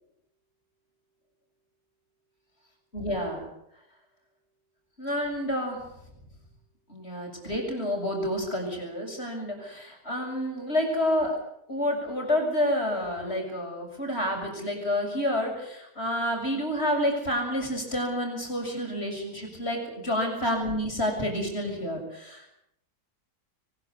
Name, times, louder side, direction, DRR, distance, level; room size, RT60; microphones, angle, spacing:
voice 1, 2.9-3.5 5.0-5.9 6.9-11.4 11.7-22.5, left 1 dB, 35° left, 2 dB, 7.4 m, -29 dB
23.0 x 20.5 x 8.2 m, 0.75 s
omnidirectional pair, 1.9 m